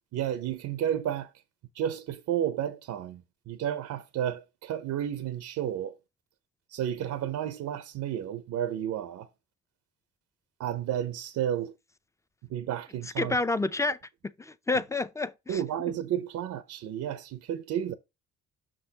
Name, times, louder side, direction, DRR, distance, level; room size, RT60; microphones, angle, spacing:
voice 1, 0.1-1.3 1.7-6.0 6.7-9.3 10.6-11.7 12.5-13.4 15.5-17.9, right 10 dB, 70° right, 0.7 m, -32 dB
voice 2, 13.2-14.0 14.4-15.6, left 3 dB, 10° left, 0.5 m, -29 dB
6.2 x 6.1 x 2.8 m
cardioid pair, 90°, 30 cm